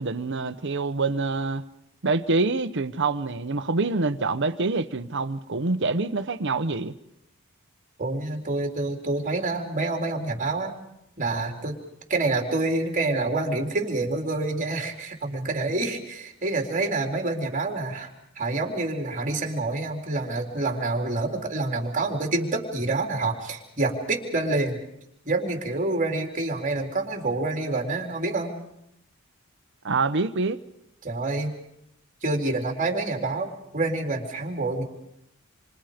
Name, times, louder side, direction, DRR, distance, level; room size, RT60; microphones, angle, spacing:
voice 1, 0.0-1.6 2.0-6.9 29.8-30.6, right 3 dB, 60° right, 1.0 m, -26 dB
voice 2, 8.0-10.8 11.2-11.8 12.1-18.1 18.4-24.8 25.2-28.5 31.0-31.5 32.2-34.8, right 2 dB, 40° right, 3.9 m, -27 dB
28.0 x 26.0 x 5.2 m
head